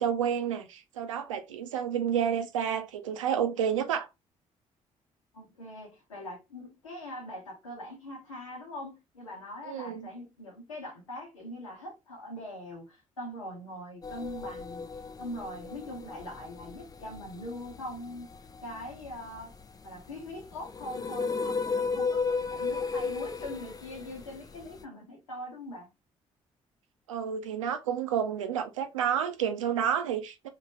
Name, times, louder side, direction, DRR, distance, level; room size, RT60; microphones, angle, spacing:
voice 1, 0.0-4.1 9.7-10.1 27.1-30.5, right 8 dB, 75° right, 0.6 m, -30 dB
voice 2, 5.3-14.9 15.2-18.3 18.6-19.5 19.8-25.9, left 1 dB, 80° left, 1.3 m, -42 dB
sound 1, 14.0-24.8, left 4 dB, 25° left, 0.5 m, -35 dB
4.1 x 2.9 x 3.1 m
figure-of-eight pair, 45°, 16 cm